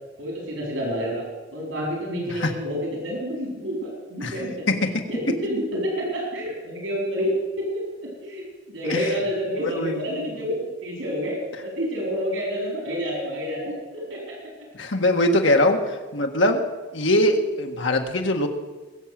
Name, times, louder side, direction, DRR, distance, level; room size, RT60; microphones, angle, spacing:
voice 1, 0.2-14.4 15.0-15.7 17.4-17.5, equal, 85° right, -2 dB, 4.5 m, -29 dB
voice 2, 14.8-15.8 16.1-16.6 16.9-18.5, left 1 dB, 75° left, 4 dB, 1.7 m, -21 dB
22.0 x 7.3 x 7.6 m, 1.3 s
head